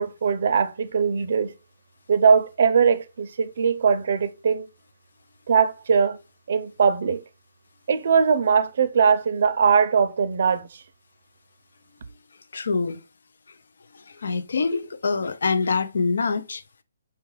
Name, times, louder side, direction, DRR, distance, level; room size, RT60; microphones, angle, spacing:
voice 1, 0.0-1.5 2.1-4.7 5.5-6.2 6.5-7.2 7.9-10.8, right 6 dB, 50° right, 0.4 m, -21 dB
voice 2, 12.5-13.0 13.9-16.6, left 4 dB, 75° left, 0.4 m, -25 dB
5.5 x 2.3 x 3.1 m
hypercardioid pair, 175°, 0 cm